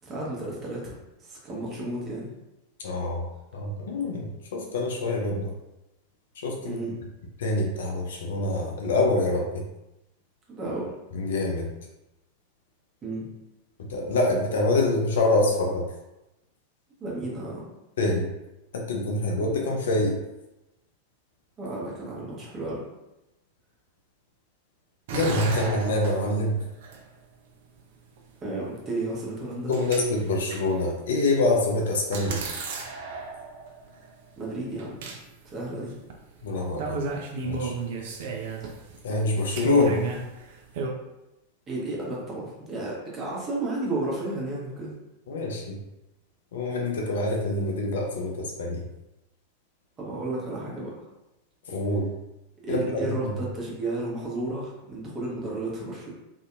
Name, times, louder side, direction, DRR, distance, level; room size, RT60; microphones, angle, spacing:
voice 1, 0.0-2.3 6.6-6.9 10.5-10.9 13.0-13.3 17.0-17.7 21.6-22.8 28.4-29.7 34.4-35.0 35.5-35.9 41.7-44.9 50.0-51.1 52.6-56.1, right 2 dB, 25° right, -4 dB, 1.0 m, -32 dB
voice 2, 2.8-3.3 3.5-5.5 6.4-6.8 7.4-9.6 11.1-11.7 13.9-15.8 18.0-18.3 18.7-20.2 25.1-26.6 29.7-32.4 36.4-37.0 37.4-37.7 39.0-40.0 45.3-45.8 46.5-48.8 51.7-52.1 52.7-52.9 53.2-53.3, left 2 dB, 60° left, 0 dB, 0.4 m, -25 dB
sound 1, 25.1-27.1 28.2-28.3 29.5-30.8 31.5-31.6 32.1-34.5 34.8-35.2 35.5-35.6 36.1-36.2 36.4-36.5 36.8-40.9, right 4 dB, 55° right, 0.4 m, -33 dB
2.6 x 2.6 x 2.2 m, 0.95 s
figure-of-eight pair, 90°, 0 cm